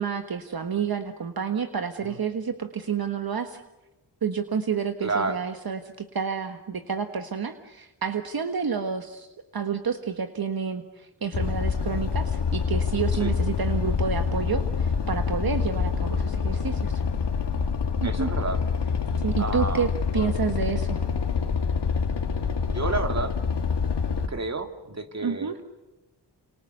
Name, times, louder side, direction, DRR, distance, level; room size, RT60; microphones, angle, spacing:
voice 1, 0.0-3.6 4.2-9.3 9.5-17.0 18.0-18.3 19.2-19.9 20.1-21.0 25.2-25.6, right 6 dB, 60° right, 7 dB, 1.5 m, -29 dB
voice 2, 5.0-5.4 13.1-13.3 18.0-18.6 19.4-19.9 22.6-23.3 24.3-25.5, right 3 dB, 40° right, 6 dB, 2.6 m, -30 dB
sound 1, 11.3-24.3, left 6 dB, 75° left, 2.2 m, -26 dB
29.5 x 27.5 x 6.7 m, 1.1 s
wide cardioid pair, 85°, 42 cm